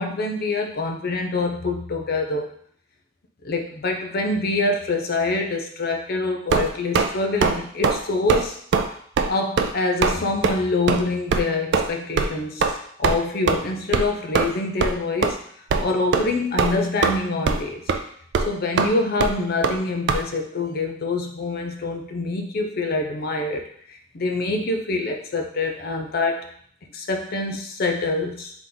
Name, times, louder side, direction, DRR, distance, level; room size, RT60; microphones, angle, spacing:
voice 1, 0.0-2.5 3.4-8.6 9.3-15.4 15.8-17.8 18.5-23.6 23.9-26.5 26.9-28.5, left 3 dB, 55° left, 3 dB, 0.6 m, -25 dB
sound 1, 6.5-7.1 7.4-7.6 7.8-8.0 8.3-8.5 8.7-8.9 9.2-9.3 9.6-9.7 10.0-10.2 10.4-10.5 10.9-11.0 11.3-11.4 11.7-11.9 12.2-12.3 12.6-12.7 13.0-13.2 13.5-13.6 13.9-14.1 14.3-14.5 14.8-14.9 15.2-15.3 15.7-15.8 16.1-16.3 16.6-17.2 17.5-17.6 17.9-18.0 18.3-18.5 18.8-18.9 19.2-19.3 19.6-19.8 20.1-20.2, right 5 dB, 65° right, 0.4 m, -20 dB
3.8 x 3.0 x 3.8 m, 0.62 s
head